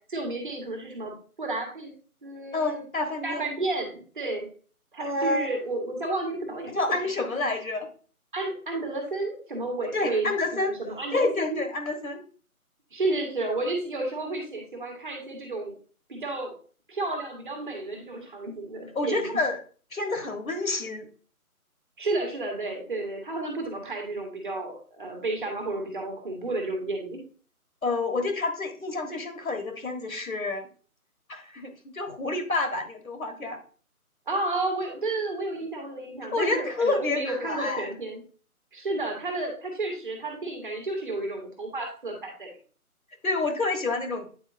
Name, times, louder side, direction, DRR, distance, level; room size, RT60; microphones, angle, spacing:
voice 1, 0.1-1.9 2.2-2.8 3.2-4.5 4.9-6.7 8.3-11.6 12.9-15.7 16.1-16.5 16.9-19.4 22.0-27.2 34.3-38.2 38.7-42.5, right 2 dB, 35° right, 2 dB, 1.6 m, -31 dB
voice 2, 2.5-3.5 5.0-5.5 6.7-7.9 9.9-10.8 11.1-12.2 18.9-19.6 19.9-21.1 27.8-30.7 31.3-33.6 36.3-37.9 43.2-44.3, left 3 dB, 65° left, 5 dB, 1.5 m, -28 dB
9.2 x 4.5 x 2.6 m, 0.41 s
figure-of-eight pair, 160°, 44 cm